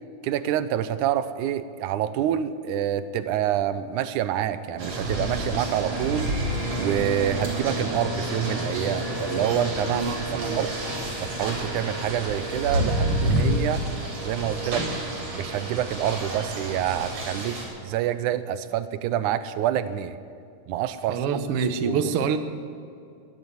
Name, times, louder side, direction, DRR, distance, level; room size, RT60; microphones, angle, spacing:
voice 1, 0.2-6.3 6.8-10.1 10.5-10.7 11.2-13.8 14.2-14.9 15.3-20.2 20.7-21.2 21.5-22.1, right 11 dB, 90° right, 13 dB, 2.1 m, -27 dB
sound 1, 4.8-17.6, right 1 dB, 50° right, 4.5 m, -29 dB
voice 2, 9.9-10.6 21.1-22.4, right 6 dB, 65° right, 8 dB, 1.5 m, -26 dB
20.5 x 7.4 x 9.5 m, 2.5 s
omnidirectional pair, 3.5 m